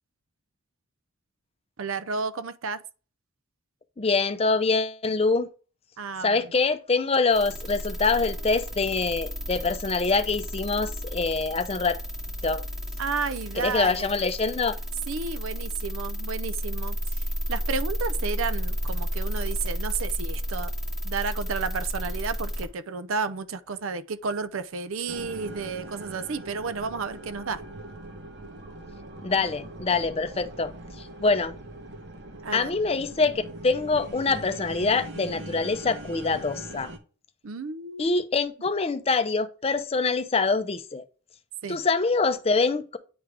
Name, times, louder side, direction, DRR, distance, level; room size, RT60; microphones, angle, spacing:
voice 1, 1.8-2.8 6.0-6.5 13.0-14.1 15.1-17.0 17.5-20.7 21.0-27.6 32.4-32.7 37.4-38.2 41.6-41.8, right 5 dB, 70° right, 0.5 m, -32 dB
voice 2, 4.0-5.5 6.2-12.0 12.4-12.6 13.6-14.8 29.2-30.7 31.0-31.5 32.5-36.9 38.0-41.0 41.7-43.0, left 4 dB, 30° left, 0.5 m, -25 dB
sound 1, 7.3-22.7, equal, ahead, 0.8 m, -32 dB
sound 2, 25.1-37.0, right 1 dB, 50° right, 0.9 m, -41 dB
9.5 x 3.6 x 3.3 m
head